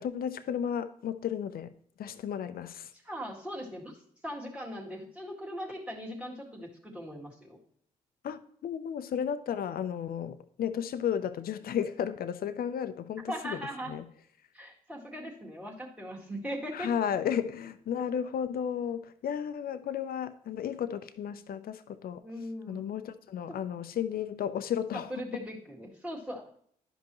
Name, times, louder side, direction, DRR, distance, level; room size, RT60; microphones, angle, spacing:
voice 1, 0.0-1.7 2.0-2.9 8.2-13.6 13.9-14.0 16.7-22.2 22.7-25.1, left 8 dB, 55° left, 0.6 m, -33 dB
voice 2, 2.9-7.6 13.3-14.0 14.5-16.9 22.2-22.9 23.5-23.6 24.9-26.6, equal, 5° right, 1.9 m, -40 dB
11.0 x 5.2 x 3.0 m
hypercardioid pair, 45°, 18 cm